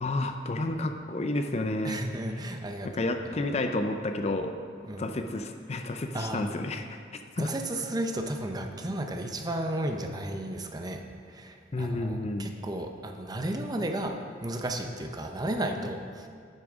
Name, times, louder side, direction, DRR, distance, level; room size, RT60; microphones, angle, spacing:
voice 1, 0.0-2.0 2.8-4.5 5.0-7.0 7.4-7.5 11.7-12.4, left 2 dB, 35° left, 6 dB, 0.5 m, -30 dB
voice 2, 1.8-3.1 4.9-5.2 6.1-6.5 7.4-11.0 11.3-16.3, right 1 dB, 20° right, 4 dB, 0.6 m, -33 dB
11.0 x 8.8 x 3.6 m, 2.1 s
head